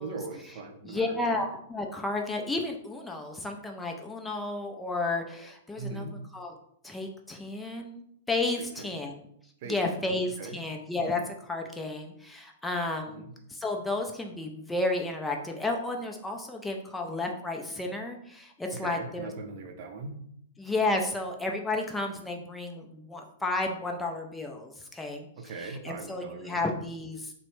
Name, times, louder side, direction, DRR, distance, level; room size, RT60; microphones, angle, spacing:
voice 1, 0.0-1.4 5.8-6.2 8.6-8.9 9.6-10.1 10.4-10.6 13.1-13.3 18.7-20.2 25.4-26.7, right 3 dB, 50° right, 4 dB, 0.5 m, -40 dB
voice 2, 0.8-6.5 6.8-9.2 9.7-13.2 13.5-19.3 20.6-25.3 25.6-27.3, left 2 dB, 10° left, 2 dB, 0.4 m, -32 dB
3.1 x 2.0 x 3.1 m, 0.70 s
hypercardioid pair, 110°, 0 cm